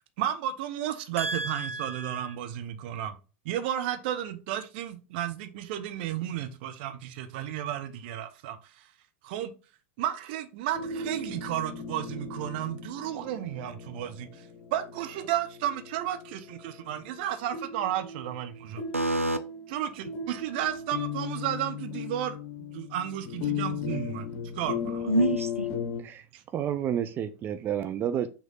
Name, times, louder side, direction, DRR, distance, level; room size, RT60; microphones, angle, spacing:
voice 1, 0.2-3.2 3.4-8.9 9.2-9.5 10.0-18.8 19.7-22.4 22.7-24.3 24.5-25.1 26.3-26.4, right 11 dB, 50° right, 1.1 m, -33 dB
voice 2, 1.2-2.2 18.9-19.4 25.1-25.7, right 2 dB, 85° right, 0.5 m, -28 dB
sound 1, 10.7-26.0, left 6 dB, 45° left, 1.2 m, -37 dB
voice 3, 26.5-28.3, right 9 dB, 30° right, 0.6 m, -30 dB
6.3 x 3.4 x 5.6 m
figure-of-eight pair, 90°, 7 cm